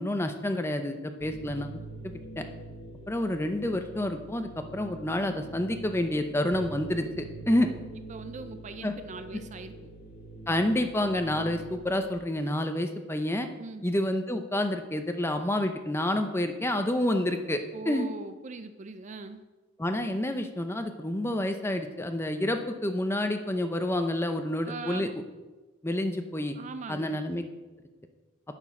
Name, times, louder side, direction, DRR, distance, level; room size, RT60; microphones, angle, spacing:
voice 1, 0.0-1.7 2.0-2.4 3.1-7.7 8.8-8.9 10.5-13.5 13.8-18.1 19.8-25.1 25.8-26.5 26.9-27.4, left 1 dB, 10° left, 7 dB, 0.6 m, -29 dB
sound 1, 1.2-12.0, right 2 dB, 45° left, 1.5 m, -45 dB
voice 2, 7.5-7.8 8.1-9.9 13.6-13.9 17.7-19.4 24.6-25.1 26.5-27.2, right 3 dB, 35° right, 10 dB, 0.4 m, -41 dB
9.6 x 6.2 x 5.9 m, 1.2 s
head